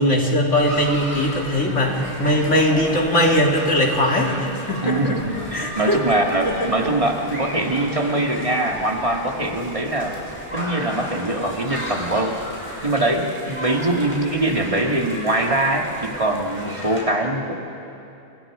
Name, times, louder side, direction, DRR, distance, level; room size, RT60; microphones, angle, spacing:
voice 1, 0.0-5.2 5.5-6.0 6.4-6.5, equal, 85° left, 0 dB, 3.1 m, -20 dB
sound 1, 0.6-17.0, equal, 10° left, 6.1 m, -34 dB
voice 2, 4.8-10.2 10.5-12.4 12.8-17.5, right 1 dB, 30° right, 1 dB, 2.0 m, -22 dB
28.0 x 27.0 x 5.0 m, 2.8 s
omnidirectional pair, 1.2 m